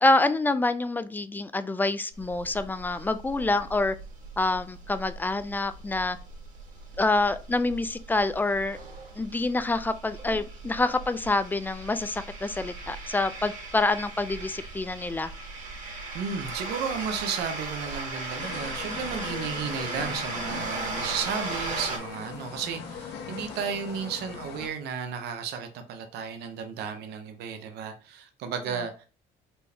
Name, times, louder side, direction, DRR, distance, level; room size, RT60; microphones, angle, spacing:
voice 1, 0.0-4.0 4.4-6.2 7.0-8.8 9.2-15.3, left 2 dB, 10° left, 0.3 m, -26 dB
sound 1, 2.1-22.0, right 3 dB, 50° right, 1.8 m, -38 dB
voice 2, 16.1-29.0, right 6 dB, 75° right, 0.7 m, -34 dB
sound 2, 18.4-24.7, left 6 dB, 80° left, 1.1 m, -40 dB
4.4 x 3.4 x 2.8 m
cardioid pair, 110°, 17 cm